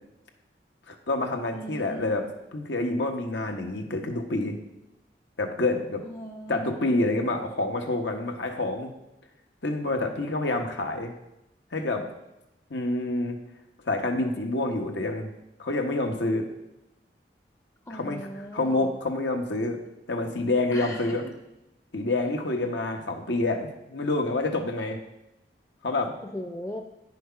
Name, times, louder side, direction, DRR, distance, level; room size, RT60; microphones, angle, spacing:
voice 1, 0.9-4.6 5.4-6.0 6.5-8.9 9.6-11.1 11.7-12.1 12.7-13.4 13.8-15.3 15.6-16.5 17.9-19.8 20.1-21.3 21.9-25.0 25.8-26.2, left 2 dB, 90° left, 4 dB, 1.2 m, -28 dB
voice 2, 1.5-2.2 6.0-6.9 17.9-18.9 20.7-21.3 26.2-26.8, equal, 15° left, 2 dB, 0.5 m, -38 dB
9.4 x 6.4 x 5.7 m, 0.90 s
head